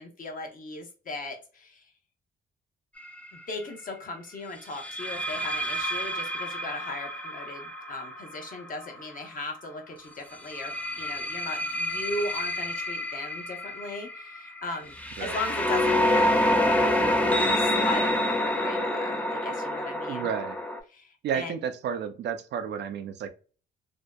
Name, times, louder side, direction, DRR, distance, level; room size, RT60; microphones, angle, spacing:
voice 1, 0.0-1.9 3.3-14.9 15.2-16.4 17.6-20.3 20.9-21.6, left 2 dB, 45° left, 3 dB, 0.7 m, -37 dB
sound 1, 3.0-3.3 4.8-9.5 10.3-20.8, left 1 dB, 5° left, 0.4 m, -28 dB
voice 2, 20.1-20.6 21.2-23.3, right 8 dB, 60° right, 8 dB, 0.4 m, -32 dB
2.6 x 2.1 x 2.2 m, 0.37 s
cardioid pair, 90°, 20 cm